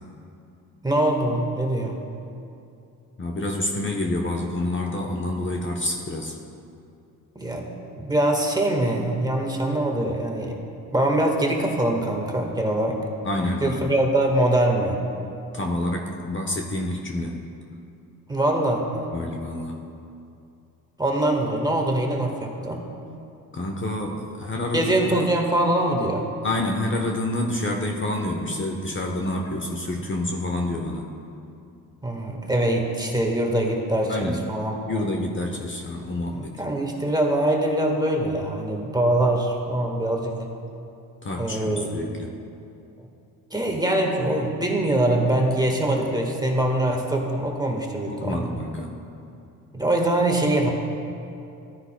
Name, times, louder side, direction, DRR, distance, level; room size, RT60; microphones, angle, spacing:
voice 1, 0.8-2.0 7.3-10.6 10.9-13.0 13.6-15.0 18.3-19.1 21.0-22.9 24.7-26.2 32.0-35.1 36.3-40.4 41.4-41.9 43.5-48.4 49.7-50.7, right 1 dB, 10° right, 1 dB, 1.5 m, -23 dB
voice 2, 3.2-6.3 13.2-13.9 15.5-17.4 19.1-19.8 23.5-25.1 26.4-31.1 34.1-34.5 34.9-36.5 41.2-42.3 48.0-48.9, left 1 dB, 30° left, 1 dB, 1.0 m, -28 dB
13.5 x 9.5 x 2.2 m, 2.6 s
supercardioid pair, 65°, 37 cm